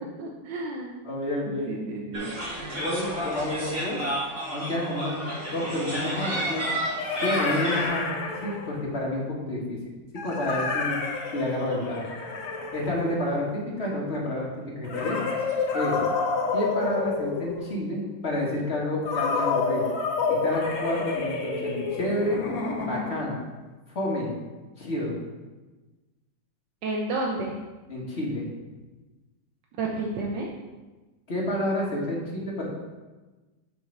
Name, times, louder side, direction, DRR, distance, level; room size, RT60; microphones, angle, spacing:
voice 1, 0.2-1.0 1.4-2.3 26.8-27.6 29.8-30.5, right 2 dB, 75° right, -1 dB, 1.3 m, -31 dB
voice 2, 1.0-1.8 2.8-4.0 4.5-5.2 5.5-6.6 7.2-8.0 8.4-9.8 10.1-11.0 11.3-12.1 12.7-15.2 15.7-16.0 16.5-19.9 20.3-22.4 22.8-23.3 23.9-24.3 24.8-25.1 27.9-28.5 31.3-32.7, left 1 dB, 40° left, -3 dB, 1.5 m, -29 dB
sound 1, 2.1-7.9, right 1 dB, 30° right, 1.7 m, -31 dB
sound 2, 5.1-5.2 6.5-8.9 10.2-13.6 14.8-17.9 19.1-23.3, left 4 dB, 85° left, 1.8 m, -29 dB
6.2 x 3.8 x 5.9 m, 1.2 s
omnidirectional pair, 2.1 m